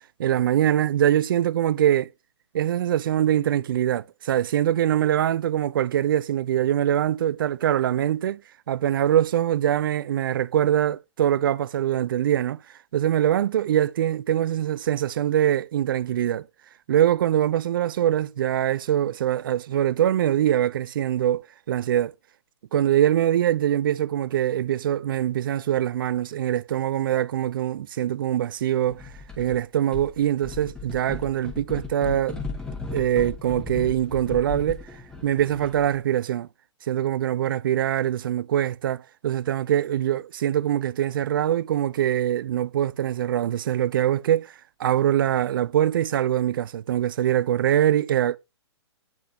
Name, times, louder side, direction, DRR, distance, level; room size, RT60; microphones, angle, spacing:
voice 1, 0.2-2.1 2.5-8.4 8.7-12.6 12.9-16.5 16.9-22.1 22.7-29.0 29.4-32.4 32.9-34.8 35.2-36.5 36.9-44.5 44.8-48.4, right 11 dB, 50° right, 0.4 m, -23 dB
sound 1, 28.9-29.6 29.9-35.9, left 4 dB, 5° left, 1.4 m, -36 dB
8.7 x 7.7 x 2.8 m
figure-of-eight pair, 120°, 15 cm